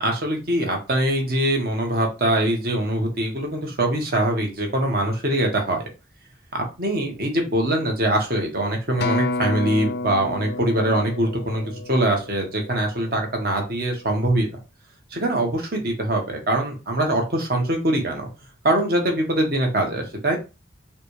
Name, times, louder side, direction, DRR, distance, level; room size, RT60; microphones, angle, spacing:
voice 1, 0.0-5.9 6.5-11.6 11.9-14.5 15.1-18.3 18.6-20.4, right 1 dB, 55° right, 2 dB, 1.3 m, -23 dB
Acoustic guitar, 9.0-13.4 14.1-14.2, left 2 dB, 60° left, 0.5 m, -30 dB
5.8 x 2.4 x 3.3 m, 0.28 s
head